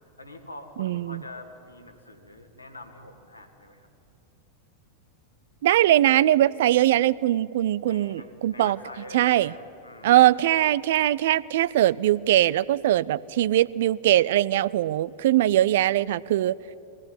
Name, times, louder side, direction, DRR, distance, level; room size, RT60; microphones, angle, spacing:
voice 1, 0.2-3.9 7.8-10.2, left 1 dB, 85° left, 4 dB, 2.2 m, -44 dB
voice 2, 0.8-1.2 5.6-8.8 9.1-9.5 10.0-16.6, right 13 dB, 55° right, 20 dB, 0.4 m, -21 dB
22.0 x 16.5 x 9.9 m, 2.7 s
figure-of-eight pair, 90°, 0 cm